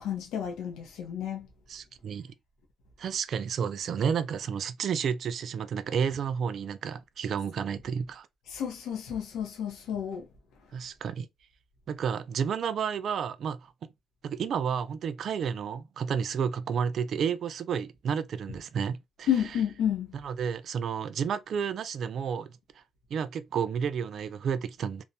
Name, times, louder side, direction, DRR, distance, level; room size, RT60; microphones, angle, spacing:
voice 1, 0.0-1.5 8.5-10.2 19.3-20.1, left 9 dB, 85° left, 0.6 m, -31 dB
voice 2, 1.7-2.3 3.0-8.3 10.7-11.3 11.9-13.9 14.2-19.3 20.1-22.5 23.1-25.0, right 7 dB, 60° right, 0.3 m, -31 dB
2.6 x 2.1 x 2.6 m
cardioid pair, 90°, 0 cm